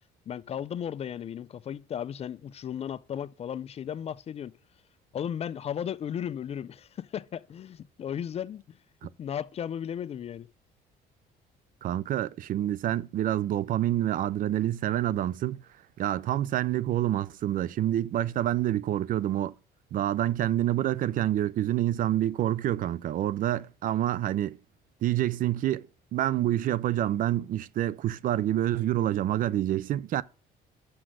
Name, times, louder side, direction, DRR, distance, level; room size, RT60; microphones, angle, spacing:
voice 1, 0.3-4.5 5.1-8.8 9.2-10.5, left 9 dB, 40° left, 0.4 m, -35 dB
voice 2, 11.8-15.6 16.0-19.5 19.9-24.6 25.0-25.9 26.1-30.2, right 12 dB, 55° right, 0.4 m, -27 dB
6.2 x 5.9 x 6.2 m
cardioid pair, 110°, 17 cm